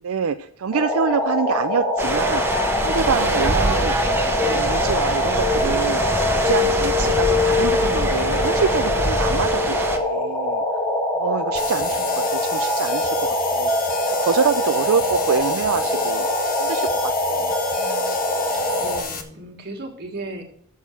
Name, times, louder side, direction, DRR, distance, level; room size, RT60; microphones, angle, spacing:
voice 1, 0.0-2.4 2.8-3.9 4.4-6.0 6.3-10.6 11.2-13.7 14.2-16.3 16.6-18.2, right 6 dB, 75° right, 8 dB, 0.4 m, -26 dB
sound 1, 0.7-19.0, left 1 dB, 15° left, 1.3 m, -23 dB
sound 2, 2.0-10.0, right 1 dB, 10° right, 1.1 m, -25 dB
sound 3, 11.5-19.2, left 6 dB, 40° left, 1.1 m, -32 dB
voice 2, 18.8-20.4, right 2 dB, 50° right, 2 dB, 1.8 m, -35 dB
7.1 x 6.4 x 7.4 m, 0.64 s
head